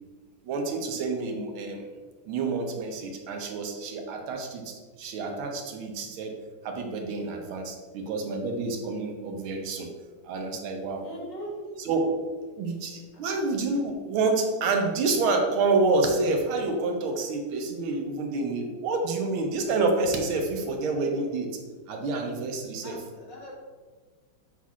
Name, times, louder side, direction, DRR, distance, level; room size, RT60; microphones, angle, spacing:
voice 1, 0.4-1.8 2.3-6.4 6.6-9.9 10.2-11.0 11.8-12.1 12.6-21.5 21.9-23.0, right 3 dB, 80° right, 3 dB, 1.7 m, -28 dB
voice 2, 11.0-11.7 13.3-13.4 22.8-23.5, equal, 60° left, -4 dB, 2.2 m, -40 dB
7.0 x 5.9 x 2.4 m, 1.4 s
omnidirectional pair, 2.3 m